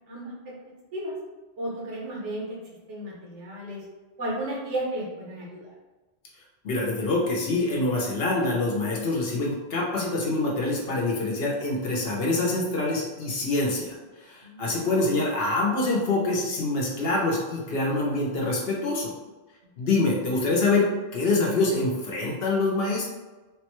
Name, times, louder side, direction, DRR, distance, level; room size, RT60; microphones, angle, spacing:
voice 1, 0.1-0.5 0.9-1.2 1.6-2.6 2.9-3.8 4.2-5.7 14.4-14.8, right 1 dB, 80° right, -4 dB, 1.2 m, -33 dB
voice 2, 6.6-19.1 19.8-23.1, left 2 dB, 60° left, -3 dB, 0.9 m, -25 dB
3.4 x 2.2 x 3.0 m, 1.2 s
omnidirectional pair, 1.2 m